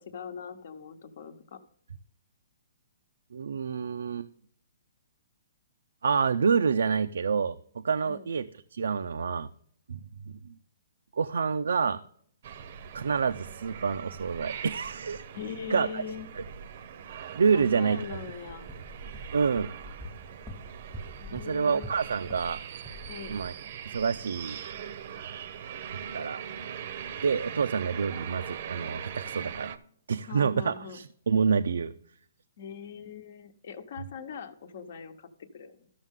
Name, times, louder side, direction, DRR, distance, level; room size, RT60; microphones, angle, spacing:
voice 1, 0.0-1.6 8.0-8.3 15.3-16.3 17.5-18.7 21.2-21.9 23.1-23.4 30.3-31.0 32.6-35.3 35.5-35.9, left 7 dB, 55° left, 10 dB, 1.0 m, -41 dB
voice 2, 3.3-4.3 6.0-8.5 8.7-9.5 9.9-10.0 10.4-10.5 11.2-12.0 12.9-15.2 15.7-16.0 16.4-16.5 17.4-18.0 19.3-19.7 21.3-22.6 23.3-23.5 23.9-24.6 26.1-26.4 27.2-29.7 30.1-31.9, right 6 dB, 90° right, 9 dB, 0.4 m, -27 dB
sound 1, 12.4-29.8, right 8 dB, 45° right, 0.6 m, -41 dB
sound 2, 18.5-22.6 22.8-23.1, left 1 dB, 5° left, 1.0 m, -44 dB
13.0 x 6.4 x 3.6 m, 0.64 s
hypercardioid pair, 160°, 0 cm